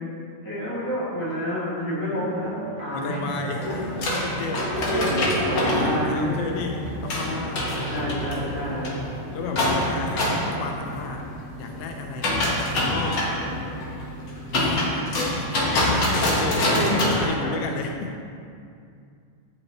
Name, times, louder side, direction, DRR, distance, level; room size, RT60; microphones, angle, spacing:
voice 1, 0.4-2.5 2.8-3.2 4.9-6.6 7.9-8.9 14.5-14.8 16.4-17.5, left 1 dB, 30° left, -8 dB, 2.4 m, -29 dB
sound 1, 2.2-8.5, right 2 dB, 65° right, 2.3 m, -38 dB
voice 2, 2.9-5.2 5.6-7.7 9.3-11.3 11.6-13.2 14.5-14.8 15.2-18.1, left 4 dB, 90° left, 3 dB, 1.3 m, -33 dB
sound 2, 3.6-17.2, left 1 dB, 50° left, 1.4 m, -26 dB
9.7 x 8.6 x 2.9 m, 2.4 s
omnidirectional pair, 3.3 m